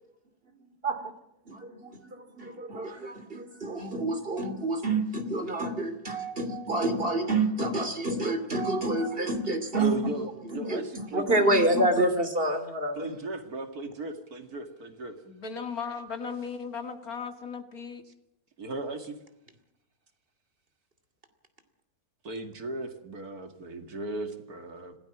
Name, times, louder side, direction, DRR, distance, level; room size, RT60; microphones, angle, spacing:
voice 1, 1.5-9.9 10.5-13.1, right 2 dB, 35° right, 2.9 m, -28 dB
voice 2, 9.7-11.5 13.0-15.2 18.6-19.2 22.2-25.0, right 2 dB, 75° right, 2.7 m, -36 dB
voice 3, 15.2-18.0, left 5 dB, 70° left, 2.4 m, -36 dB
26.0 x 17.5 x 6.1 m
omnidirectional pair, 1.6 m